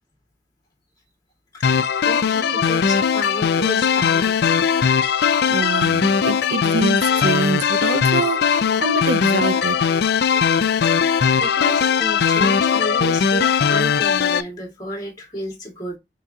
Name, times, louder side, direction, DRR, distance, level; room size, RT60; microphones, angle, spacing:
voice 1, 1.5-4.3 10.8-11.0 11.4-16.0, equal, 20° left, 1.8 m, -32 dB
sound 1, 1.6-14.4, left 7 dB, 60° left, 0.4 m, -19 dB
voice 2, 5.5-9.8, right 4 dB, 70° right, 0.5 m, -25 dB
4.6 x 3.8 x 2.7 m
head